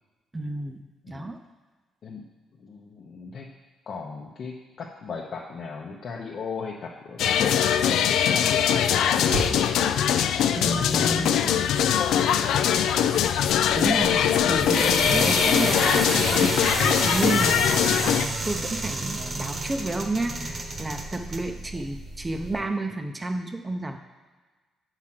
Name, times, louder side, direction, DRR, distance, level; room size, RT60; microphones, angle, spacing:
voice 1, 0.3-1.4 10.6-11.5 13.7-24.0, right 2 dB, 20° right, 5 dB, 0.6 m, -31 dB
voice 2, 2.6-3.5 3.9-9.7 10.5-13.3 21.7-21.8, left 4 dB, 55° left, -1 dB, 0.7 m, -37 dB
Motor vehicle (road), 5.4-13.8, right 1 dB, 80° right, 1.5 m, -40 dB
sound 1, 7.2-18.3, left 9 dB, 80° left, 0.3 m, -22 dB
sound 2, 12.5-22.6, right 2 dB, 35° right, 1.0 m, -31 dB
7.4 x 4.9 x 5.9 m, 1.3 s
cardioid pair, 90°, 0 cm